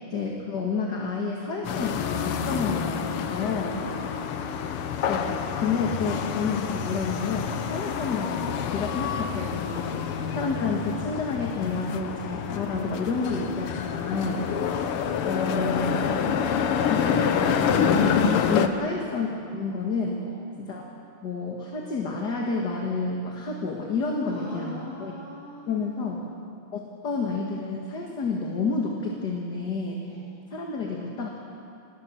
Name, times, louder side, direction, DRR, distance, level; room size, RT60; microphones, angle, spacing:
voice 1, 0.1-3.7 5.1-14.5 15.2-16.0 16.9-18.2 18.5-19.3 19.5-20.2 20.6-20.8 21.2-25.1 25.7-26.2 26.7-30.1 30.5-31.3, left 4 dB, 50° left, -1 dB, 2.3 m, -30 dB
sound 1, 1.6-18.7, left 7 dB, 85° left, 1.9 m, -27 dB
voice 2, 3.2-4.5 9.9-10.2 18.7-19.0 20.2-20.5 24.3-26.2 27.0-27.1 30.0-30.3, right 1 dB, 10° left, -8 dB, 7.3 m, -43 dB
25.5 x 20.0 x 6.2 m, 2.5 s
omnidirectional pair, 2.4 m